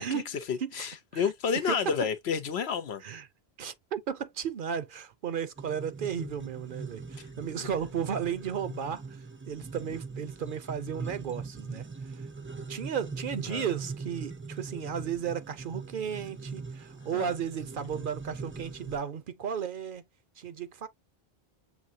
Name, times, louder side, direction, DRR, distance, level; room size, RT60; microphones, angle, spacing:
voice 1, 0.0-3.0 7.6-7.7 13.5-13.7 17.1-17.3, left 7 dB, 90° left, 1.0 m, -31 dB
voice 2, 0.6-1.3 1.6-1.9 3.0-3.3 3.6-11.9 12.6-20.0 20.4-20.9, right 8 dB, 60° right, 0.7 m, -34 dB
sound 1, 5.6-19.0, right 4 dB, 20° right, 0.3 m, -41 dB
6.9 x 2.7 x 2.7 m
omnidirectional pair, 1.1 m